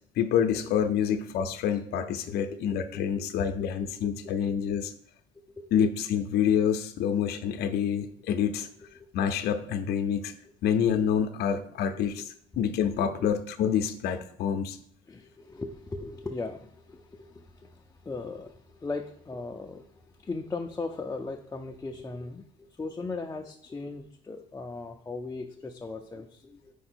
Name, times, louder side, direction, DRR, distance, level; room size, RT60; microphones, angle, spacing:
voice 1, 0.2-4.9 5.7-8.7 9.1-10.3 10.6-14.8, left 8 dB, 70° left, 7 dB, 0.6 m, -27 dB
voice 2, 1.7-2.1 2.5-2.6 3.1-3.4 4.7-4.8 5.6-5.8 8.9-9.3 11.9-12.2 13.1-13.3 15.1-26.7, left 3 dB, 15° left, 1 dB, 0.5 m, -38 dB
5.0 x 4.5 x 4.4 m, 0.63 s
cardioid pair, 110°, 17 cm